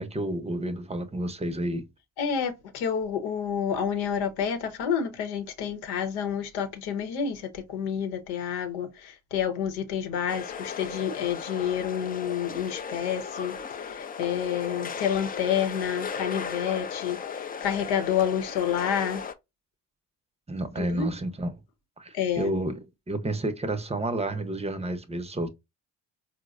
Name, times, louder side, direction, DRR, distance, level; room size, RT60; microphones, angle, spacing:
voice 1, 0.0-1.9 20.5-21.6 22.0-25.5, right 1 dB, 15° right, 0.6 m, -30 dB
voice 2, 2.2-19.2 20.8-21.1 22.1-22.6, left 8 dB, 80° left, 0.9 m, -29 dB
sound 1, 10.3-19.3, left 6 dB, 25° left, 0.4 m, -36 dB
4.3 x 2.1 x 2.4 m
supercardioid pair, 75°, 39 cm